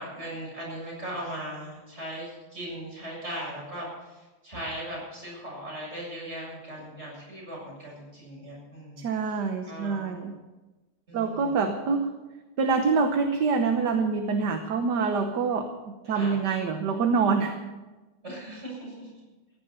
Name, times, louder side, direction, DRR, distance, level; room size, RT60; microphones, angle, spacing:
voice 1, 0.0-9.4 9.7-10.1 11.1-11.6 16.1-16.4 18.2-19.1, right 1 dB, 30° right, -4 dB, 7.6 m, -38 dB
voice 2, 9.0-10.3 11.1-12.1 12.6-15.7 16.1-17.6, right 5 dB, 55° right, 5 dB, 1.5 m, -25 dB
15.0 x 11.0 x 6.9 m, 1.2 s
omnidirectional pair, 2.4 m